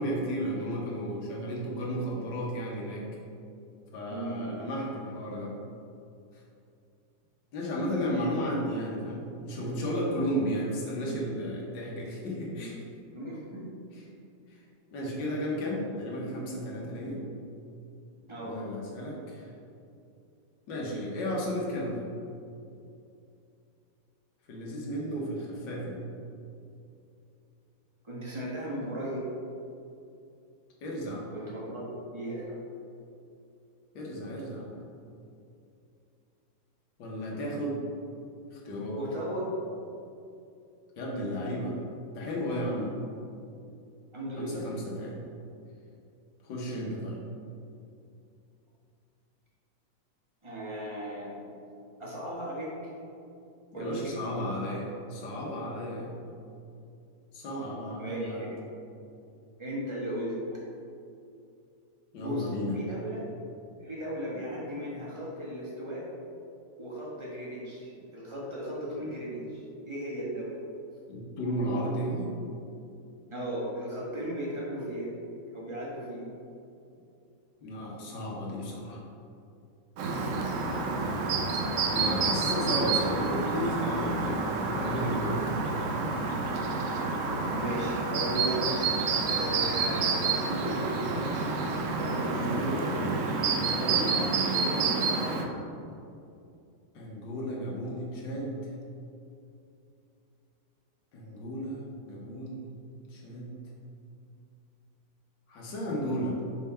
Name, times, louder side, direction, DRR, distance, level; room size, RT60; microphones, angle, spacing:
voice 1, 0.0-3.1 3.9-5.5 7.5-12.8 14.5-14.6 14.9-17.2 18.4-19.5 20.7-22.0 24.5-26.0 30.8-31.3 33.9-34.7 37.0-37.8 38.5-39.0 41.0-41.8 42.1-42.9 44.4-45.2 46.4-47.2 53.7-56.2 57.3-58.5 62.1-62.8 71.1-72.3 77.6-79.0 81.9-85.6 92.1-92.8 96.9-98.6 101.1-102.7 103.1-103.5 105.5-106.4, equal, 80° left, -3 dB, 1.8 m, -33 dB
voice 2, 4.1-4.6 8.0-8.3 13.1-13.7 18.3-18.7 28.0-29.3 31.3-32.5 39.0-39.5 44.1-44.7 50.4-51.4 52.0-52.9 53.7-54.6 58.0-58.5 59.6-60.4 62.2-62.5 62.7-63.3 63.8-66.1 66.8-70.6 73.3-75.1 75.5-76.3 87.5-88.7 89.2-90.9 91.9-93.0 93.7-94.9, right 1 dB, 20° right, -6 dB, 1.2 m, -36 dB
Chirp tweet, 80.0-95.4, right 4 dB, 70° right, 0.7 m, -29 dB
6.4 x 3.6 x 4.3 m, 2.6 s
omnidirectional pair, 1.9 m